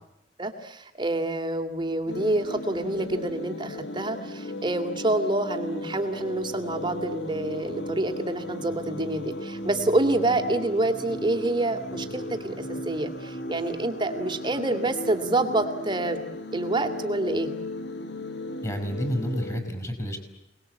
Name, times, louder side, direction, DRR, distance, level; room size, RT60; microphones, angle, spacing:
voice 1, 0.4-16.2 16.5-17.5, right 2 dB, 25° right, 6 dB, 2.8 m, -27 dB
sound 1, 2.1-19.6, left 1 dB, 65° left, 1.9 m, -36 dB
voice 2, 18.6-20.2, equal, 20° left, 6 dB, 6.4 m, -29 dB
29.5 x 20.5 x 8.4 m, 0.86 s
head